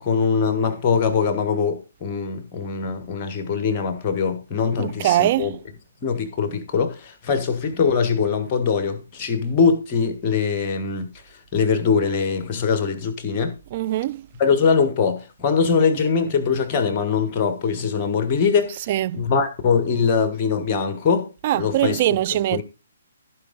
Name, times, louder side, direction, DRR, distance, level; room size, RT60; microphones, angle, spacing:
voice 1, 0.0-5.6 6.0-11.1 11.5-13.5 14.4-18.8 19.1-21.3 21.5-22.0 22.5-22.6, left 5 dB, 30° left, 1.5 m, -22 dB
voice 2, 4.8-5.6 13.7-14.2 18.9-19.2 21.4-22.6, right 14 dB, 35° right, 0.4 m, -22 dB
15.5 x 5.2 x 3.8 m
figure-of-eight pair, 130°, 0 cm